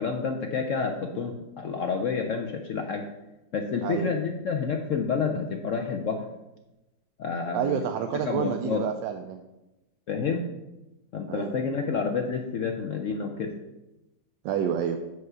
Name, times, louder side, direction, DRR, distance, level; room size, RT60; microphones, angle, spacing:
voice 1, 0.0-3.1 3.5-6.2 7.2-7.8 8.2-8.9 10.1-10.5 11.1-13.6, left 5 dB, 75° left, 4 dB, 0.7 m, -29 dB
voice 2, 7.5-9.4 11.3-11.5 14.4-15.0, right 9 dB, 80° right, 5 dB, 1.3 m, -29 dB
6.4 x 4.7 x 6.7 m, 0.99 s
omnidirectional pair, 2.0 m